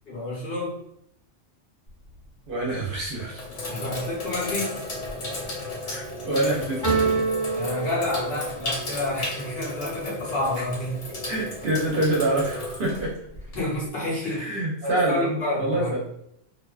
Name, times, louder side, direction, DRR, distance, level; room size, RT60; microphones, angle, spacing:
voice 1, 0.1-0.8 3.7-4.7 7.5-11.2 13.5-15.9, left 1 dB, 60° left, -4 dB, 1.0 m, -29 dB
Sink (filling or washing), 1.9-2.3 2.9-13.9, left 2 dB, 85° left, 1.1 m, -34 dB
voice 2, 2.5-3.4 5.9-7.2 11.3-13.1 14.2-16.0, right 1 dB, 55° right, -4 dB, 0.7 m, -26 dB
sound 1, 6.8-8.8, right 4 dB, 20° left, 0.7 m, -26 dB
2.4 x 2.2 x 2.3 m, 0.73 s
omnidirectional pair, 1.2 m